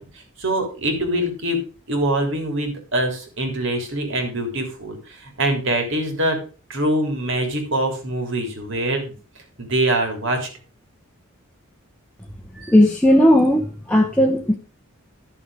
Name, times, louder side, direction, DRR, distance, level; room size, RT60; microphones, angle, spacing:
voice 1, 0.0-1.6 1.9-6.4 6.7-9.1 9.6-10.5, right 1 dB, 65° right, 4 dB, 3.5 m, -24 dB
voice 2, 12.6-14.5, left 1 dB, 5° left, 1 dB, 1.0 m, -16 dB
12.0 x 7.2 x 4.9 m, 0.34 s
head